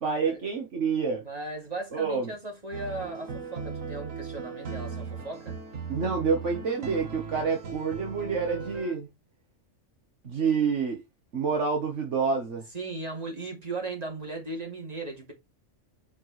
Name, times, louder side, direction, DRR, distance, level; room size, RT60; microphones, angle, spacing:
voice 1, 0.0-1.2 1.9-2.3 5.9-9.1 10.2-11.0 11.3-12.6, right 5 dB, 65° right, 1.7 m, -28 dB
voice 2, 1.2-5.5 12.7-15.3, right 2 dB, 30° right, 3.1 m, -37 dB
sound 1, 2.7-8.9, right 5 dB, 85° right, 1.8 m, -38 dB
8.1 x 5.3 x 3.3 m
omnidirectional pair, 1.3 m